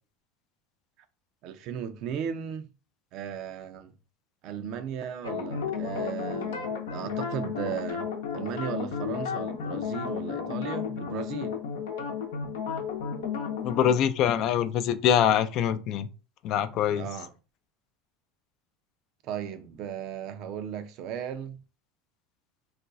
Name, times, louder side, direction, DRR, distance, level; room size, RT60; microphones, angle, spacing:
voice 1, 1.4-2.7 3.1-4.0 4.4-8.1 8.3-11.5 17.0-17.3 19.2-21.6, right 8 dB, 55° right, 0.5 m, -36 dB
sound 1, 5.2-14.0, left 6 dB, 85° left, 0.7 m, -33 dB
voice 2, 13.6-16.1 16.4-17.1, left 9 dB, 55° left, 0.4 m, -24 dB
2.4 x 2.2 x 3.9 m
supercardioid pair, 105°, 0 cm